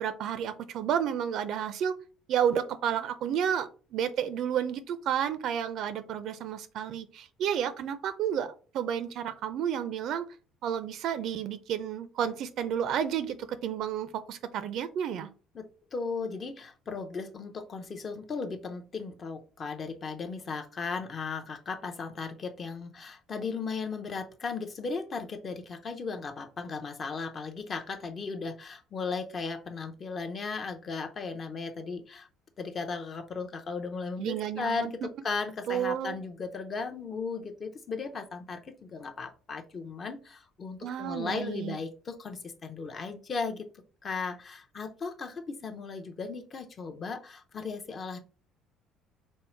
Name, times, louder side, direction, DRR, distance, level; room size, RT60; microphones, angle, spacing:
voice 1, 0.0-1.9 2.3-10.3 10.6-15.3 34.2-34.9 35.7-36.2 40.8-41.7, right 9 dB, 55° right, 13 dB, 0.5 m, -31 dB
voice 2, 15.9-32.3 32.6-43.7 44.0-48.2, left 4 dB, 30° left, 5 dB, 0.6 m, -36 dB
5.3 x 2.1 x 4.4 m, 0.37 s
cardioid pair, 135°, 0 cm